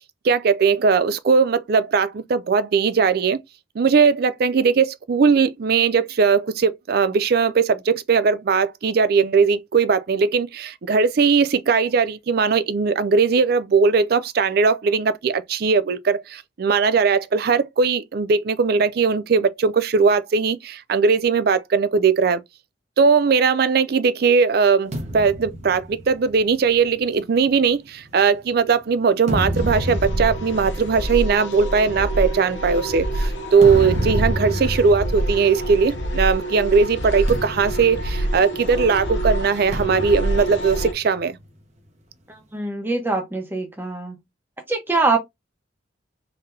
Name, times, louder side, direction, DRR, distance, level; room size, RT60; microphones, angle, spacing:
voice 1, 0.2-3.4 3.8-22.4 23.0-41.4, right 5 dB, 55° right, 0.4 m, -19 dB
sound 1, 24.9-28.5 29.0-36.5 36.7-36.9 37.3-38.9 39.7-41.5, equal, 40° right, 1.0 m, -30 dB
sound 2, 29.6-40.9, right 1 dB, 70° left, 0.8 m, -27 dB
voice 2, 42.3-44.2 44.7-45.2, right 3 dB, 10° right, 0.9 m, -23 dB
3.8 x 3.3 x 2.7 m
head